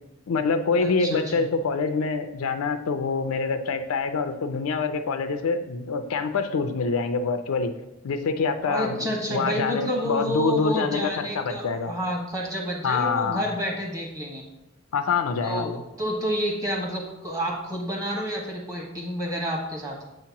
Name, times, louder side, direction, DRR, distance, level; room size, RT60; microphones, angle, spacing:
voice 1, 0.3-7.7 8.0-11.0 11.3-11.9 12.8-13.5 14.9-15.8, left 4 dB, 85° left, 8 dB, 0.4 m, -26 dB
voice 2, 0.8-1.5 8.6-14.5 15.4-20.1, equal, 15° right, -1 dB, 1.1 m, -29 dB
7.6 x 2.9 x 5.8 m, 0.93 s
head